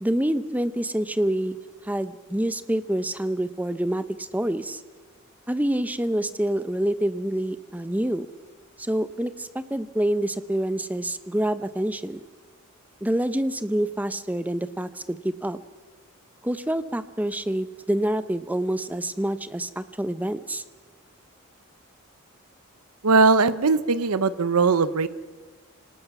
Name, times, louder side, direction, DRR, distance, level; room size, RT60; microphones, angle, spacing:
voice 1, 0.0-1.6 1.8-4.8 5.5-8.3 8.8-12.2 13.0-15.6 16.4-20.6, right 1 dB, 5° right, 13 dB, 0.7 m, -27 dB
voice 2, 23.0-25.1, right 4 dB, 85° right, 15 dB, 0.8 m, -20 dB
26.0 x 19.0 x 6.0 m, 1.3 s
head